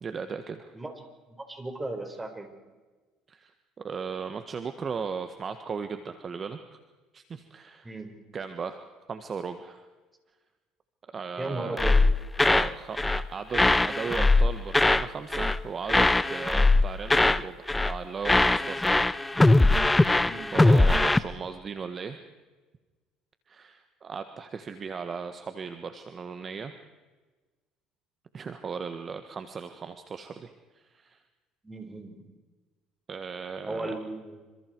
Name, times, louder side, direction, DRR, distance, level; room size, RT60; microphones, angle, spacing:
voice 1, 0.0-0.7 3.3-3.5 3.8-6.8 7.1-7.9 8.3-9.8 11.1-11.8 12.4-19.0 19.7-22.2 23.5-26.7 28.3-31.2 33.1-33.9, right 5 dB, 35° right, 8 dB, 1.6 m, -37 dB
voice 2, 1.3-2.5 7.8-8.2 11.4-12.0 20.2-20.5 31.6-32.2 33.7-34.4, right 2 dB, 15° right, 5 dB, 5.3 m, -36 dB
sound 1, 11.8-12.7 13.0-13.3 13.5-15.1 15.3-15.6 15.9-17.4 17.7-18.0 18.2-21.2, left 2 dB, 10° left, 0.8 m, -21 dB
28.0 x 26.5 x 4.7 m, 1.3 s
supercardioid pair, 95°, 0 cm